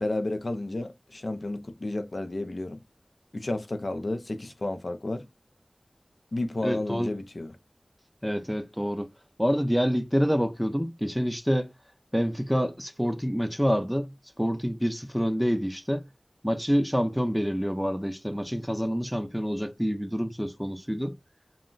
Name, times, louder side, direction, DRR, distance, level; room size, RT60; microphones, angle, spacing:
voice 1, 0.0-2.8 3.3-5.2 6.3-7.5, left 2 dB, 65° left, 0.4 m, -31 dB
voice 2, 6.6-7.1 8.2-9.1 9.4-11.7 12.1-16.1 16.4-21.1, equal, ahead, 0.4 m, -27 dB
2.2 x 2.0 x 3.7 m
wide cardioid pair, 40°, 0 cm